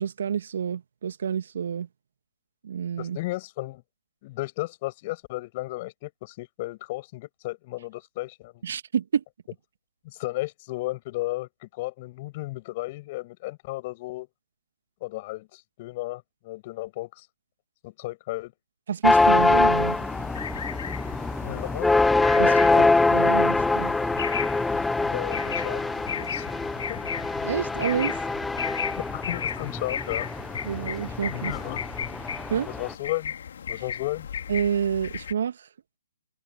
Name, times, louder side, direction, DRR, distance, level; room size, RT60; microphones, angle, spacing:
voice 1, 0.0-1.9 2.6-3.2 8.6-9.2 18.9-19.9 22.4-22.9 23.1-23.9 27.4-28.2 30.7-31.5 32.5-32.7 34.5-35.6, right 8 dB, 60° right, 1.7 m, -28 dB
voice 2, 3.0-3.8 4.2-8.6 10.0-14.3 15.0-17.3 17.8-18.5 19.7-19.9 21.4-21.9 22.4-22.9 25.1-26.5 26.9-27.0 28.9-30.2 31.3-31.8 32.6-33.3 33.7-34.3, left 20 dB, 35° left, 6.2 m, -34 dB
sound 1, 19.0-32.9, left 3 dB, 5° left, 0.6 m, -24 dB
sound 2, 19.1-35.3, left 8 dB, 60° left, 2.9 m, -36 dB
figure-of-eight pair, 135°, 0 cm